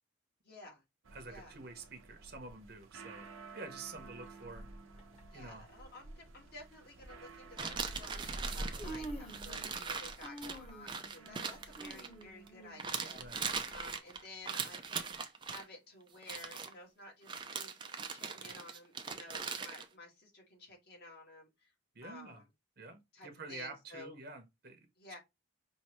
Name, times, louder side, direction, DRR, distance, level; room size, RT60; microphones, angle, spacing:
voice 1, 0.4-0.8 1.3-1.5 5.3-21.7 22.0-22.5 23.1-24.2 25.0-25.2, left 2 dB, 50° left, 1.7 m, -53 dB
sound 1, 1.0-14.0, right 1 dB, 75° right, 0.8 m, -50 dB
voice 2, 1.1-3.3 3.5-4.6 5.3-5.7 13.2-13.4 21.9-22.4 22.8-24.8, right 3 dB, 50° right, 0.9 m, -48 dB
Human voice, 5.0-5.2 6.2-6.3 6.9-7.1 8.1-8.2 8.5-9.9 10.2-13.7 14.1-14.2 15.1-15.2, right 1 dB, 30° left, 1.5 m, -48 dB
sound 2, 7.6-12.5 12.8-15.6 16.2-16.7 17.3-19.9, right 5 dB, 20° right, 0.5 m, -40 dB
5.5 x 2.7 x 3.0 m
head